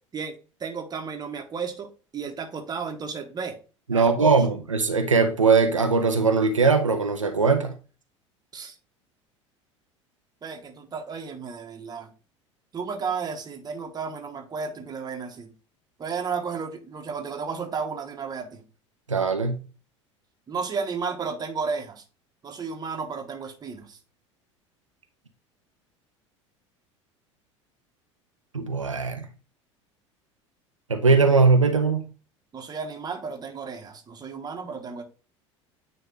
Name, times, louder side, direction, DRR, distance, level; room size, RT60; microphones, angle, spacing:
voice 1, 0.1-3.6 3.9-4.4 8.5-8.7 10.4-12.1 12.7-15.5 16.0-18.6 20.5-22.0 22.4-24.0 32.5-35.0, right 5 dB, 25° right, 1.2 m, -33 dB
voice 2, 3.9-7.7 19.1-19.6 28.5-29.3 30.9-32.1, right 4 dB, 85° right, 0.6 m, -20 dB
9.1 x 3.1 x 3.4 m
figure-of-eight pair, 70°, 16 cm